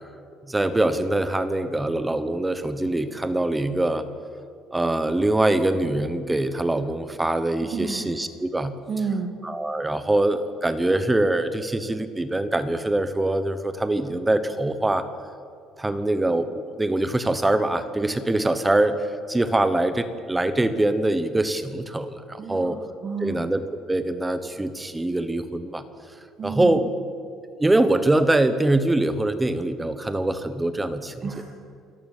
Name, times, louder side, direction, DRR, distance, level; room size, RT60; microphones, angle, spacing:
voice 1, 0.5-4.0 4.7-8.7 9.4-15.0 15.8-18.9 19.3-22.8 23.2-25.8 26.4-26.9 27.6-31.4, right 1 dB, 10° right, 11 dB, 1.0 m, -23 dB
voice 2, 7.7-8.1 8.9-9.3 22.4-23.4 26.4-26.8 31.2-31.4, right 5 dB, 30° right, 2 dB, 1.5 m, -30 dB
27.0 x 14.5 x 7.4 m, 2.4 s
cardioid pair, 165°, 0 cm